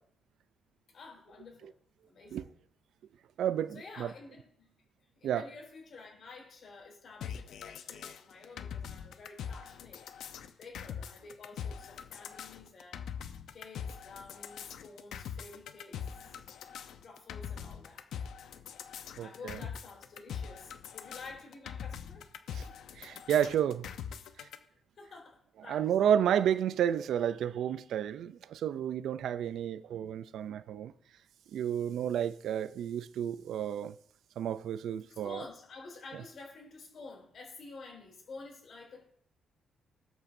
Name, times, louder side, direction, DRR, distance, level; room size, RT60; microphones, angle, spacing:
voice 1, 0.9-1.7 2.1-2.5 3.7-4.7 5.1-10.1 10.6-13.0 13.5-16.4 17.0-18.1 19.2-22.3 22.6-22.8 24.9-26.1 35.1-39.0, left 3 dB, 50° left, 4.6 m, -50 dB
voice 2, 3.4-4.1 5.2-5.4 19.2-19.6 22.5-22.6 23.0-23.9 24.4-24.5 25.7-30.9 31.5-33.9 34.4-35.4, right 9 dB, 70° right, 0.4 m, -31 dB
sound 1, 7.2-24.6, left 8 dB, 75° left, 0.8 m, -42 dB
20.0 x 8.6 x 2.7 m
cardioid pair, 150°, 0 cm